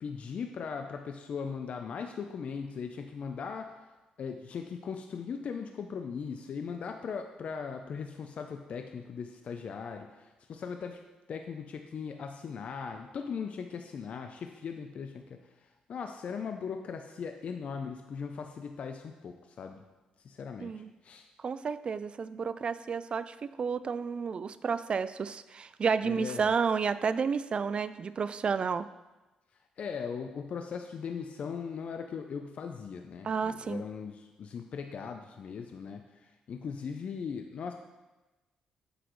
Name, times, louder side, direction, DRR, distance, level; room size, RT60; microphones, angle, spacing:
voice 1, 0.0-11.0 11.3-19.8 20.2-21.3 26.0-26.5 29.8-37.7, left 6 dB, 60° left, 5 dB, 0.5 m, -39 dB
voice 2, 21.4-28.9 33.2-33.8, right 5 dB, 45° right, 14 dB, 0.3 m, -31 dB
8.0 x 6.1 x 3.1 m, 1.1 s
cardioid pair, 80°, 2 cm